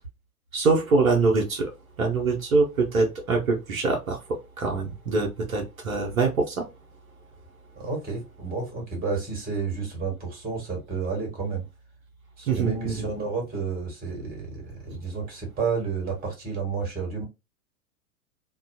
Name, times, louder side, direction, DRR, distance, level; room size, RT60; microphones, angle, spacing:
voice 1, 0.5-1.7 2.0-6.7 12.5-13.1, right 3 dB, 70° right, 1.0 m, -24 dB
voice 2, 7.8-11.6 12.4-17.2, right 5 dB, 20° right, 1.6 m, -31 dB
2.9 x 2.3 x 2.6 m
figure-of-eight pair, 95°, 43 cm